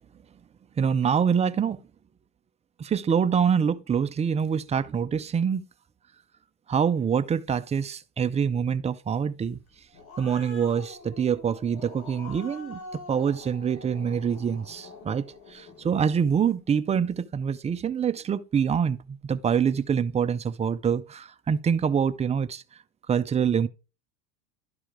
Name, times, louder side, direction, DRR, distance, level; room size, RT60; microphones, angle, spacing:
voice 1, 0.8-1.8 2.8-5.6 6.7-9.6 10.2-12.8 13.1-15.2 15.5-22.6 23.1-23.7, right 7 dB, 15° right, 0.4 m, -25 dB
Growling, 9.7-16.5, left 3 dB, 55° left, 3.1 m, -45 dB
11.5 x 4.8 x 3.6 m
supercardioid pair, 105°, 44 cm